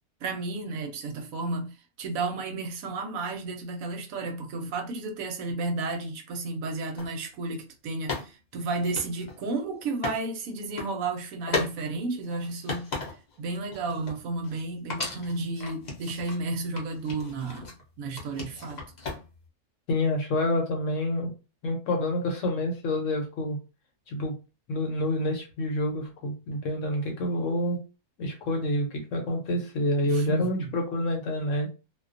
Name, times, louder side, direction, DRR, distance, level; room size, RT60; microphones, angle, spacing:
voice 1, 0.2-18.8 30.1-30.7, right 3 dB, 70° right, 0.9 m, -32 dB
sound 1, 7.0-7.1 8.1-10.2 10.5-10.9 11.5-11.7 12.1-13.4 13.7-14.6 14.9-16.4 16.8-17.8 18.2-19.5, left 3 dB, 50° left, 0.5 m, -36 dB
voice 2, 19.9-21.3 21.6-23.6 24.1-24.3 24.7-27.8 28.2-31.7, left 1 dB, 65° left, 0.9 m, -28 dB
2.4 x 2.2 x 2.4 m
omnidirectional pair, 1.6 m